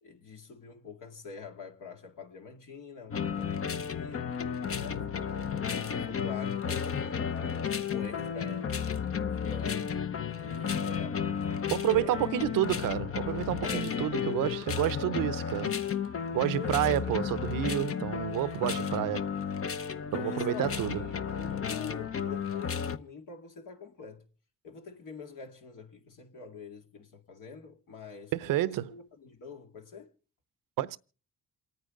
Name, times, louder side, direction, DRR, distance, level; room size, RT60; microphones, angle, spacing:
voice 1, 0.0-4.4 4.7-8.8 9.4-9.9 10.3-11.2 11.9-12.6 13.6-14.5 16.5-17.2 18.5-18.7 20.1-24.2 24.6-30.1, left 5 dB, 65° left, 2.3 m, -45 dB
sound 1, 3.1-23.0, left 7 dB, 40° left, 0.9 m, -33 dB
voice 2, 11.7-15.7 16.3-19.3 20.1-21.0 28.3-28.9 30.8-31.0, right 13 dB, 70° right, 0.7 m, -29 dB
28.0 x 9.4 x 3.8 m
supercardioid pair, 60°, 34 cm